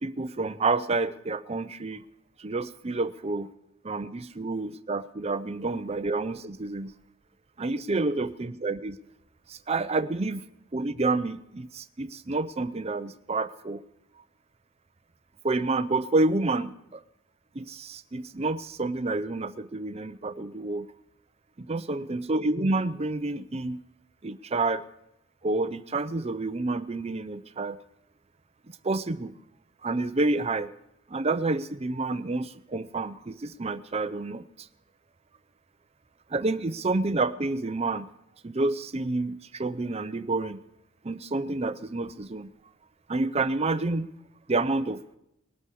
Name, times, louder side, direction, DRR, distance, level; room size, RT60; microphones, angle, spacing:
voice 1, 0.0-2.0 2.4-3.5 3.8-6.9 7.6-9.0 9.5-10.4 10.7-13.8 15.4-17.0 17.5-20.9 21.6-23.8 24.2-24.8 25.4-27.8 28.8-29.3 29.8-30.7 31.1-34.7 36.3-38.1 38.4-40.6 41.0-42.5 43.1-44.1 44.5-45.2, right 3 dB, 30° right, 12 dB, 0.6 m, -29 dB
20.0 x 12.5 x 4.8 m, 0.84 s
head